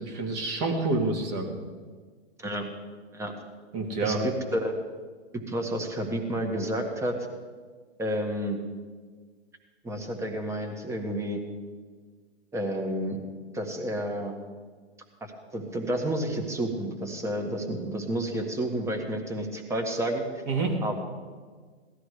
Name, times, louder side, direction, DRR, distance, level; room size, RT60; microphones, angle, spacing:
voice 1, 0.0-1.5 3.7-4.2 20.5-20.8, right 3 dB, 40° right, 1 dB, 3.1 m, -28 dB
voice 2, 4.0-4.8 5.5-7.2 8.0-8.6 9.8-11.4 12.5-13.2 13.5-14.3 15.2-20.4 20.8-21.0, right 1 dB, 10° right, 3 dB, 1.6 m, -30 dB
17.5 x 13.0 x 5.0 m, 1.5 s
hypercardioid pair, 135°, 34 cm